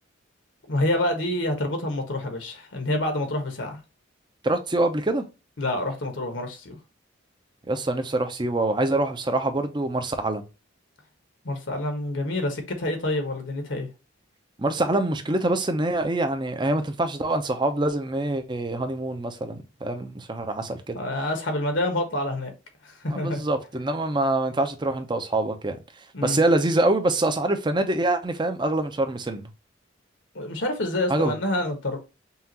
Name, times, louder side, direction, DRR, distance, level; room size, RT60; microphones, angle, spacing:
voice 1, 0.7-3.8 5.6-6.8 11.4-13.9 20.9-22.5 22.8-23.4 26.1-26.4 30.3-32.0, left 1 dB, 75° left, 1.2 m, -27 dB
voice 2, 4.4-5.2 7.7-10.4 14.6-21.0 23.1-25.8 26.2-29.5 31.1-31.3, right 2 dB, 25° right, 0.6 m, -25 dB
5.5 x 2.5 x 2.8 m
head